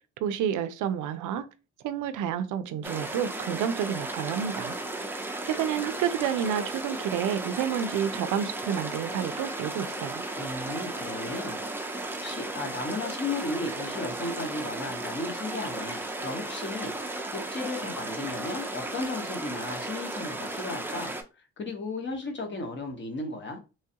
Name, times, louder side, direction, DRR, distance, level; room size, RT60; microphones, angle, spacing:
voice 1, 0.2-1.4 1.8-4.8 5.4-10.2, right 9 dB, 85° right, 0.4 m, -29 dB
sound 1, 2.8-21.2, right 2 dB, 5° right, 0.4 m, -35 dB
voice 2, 10.3-21.1 21.6-23.6, left 2 dB, 40° left, 1.0 m, -35 dB
3.2 x 2.3 x 2.8 m
cardioid pair, 90°, 30 cm